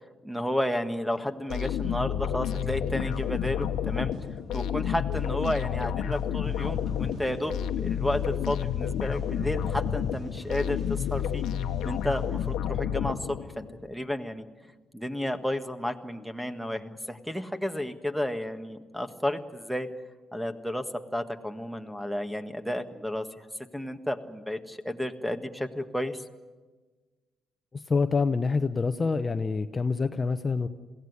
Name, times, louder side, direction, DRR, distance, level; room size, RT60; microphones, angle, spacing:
voice 1, 0.2-4.1 4.5-11.4 11.8-14.4 14.9-19.9 20.3-23.4 23.7-26.2, left 1 dB, ahead, 8 dB, 1.6 m, -32 dB
sound 1, 1.5-13.7, left 9 dB, 85° left, 1.1 m, -30 dB
sound 2, 2.6-12.3, right 3 dB, 75° right, 3.9 m, -56 dB
sound 3, 6.4-12.6, right 1 dB, 30° right, 2.6 m, -44 dB
voice 2, 27.7-30.7, left 4 dB, 30° left, 9 dB, 0.9 m, -26 dB
22.5 x 16.5 x 9.7 m, 1.3 s
cardioid pair, 90°, 0 cm